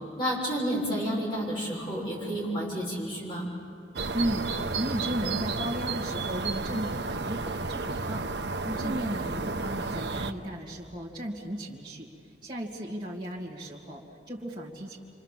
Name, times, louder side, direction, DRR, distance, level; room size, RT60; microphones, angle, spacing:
voice 1, 0.2-3.5 8.6-8.8, equal, 25° left, -4 dB, 7.2 m, -30 dB
sound 1, 4.0-10.3, right 3 dB, 75° right, 0.9 m, -32 dB
voice 2, 4.1-12.1 12.4-15.0, right 1 dB, 25° right, -5 dB, 2.3 m, -35 dB
27.5 x 25.5 x 7.5 m, 2.4 s
head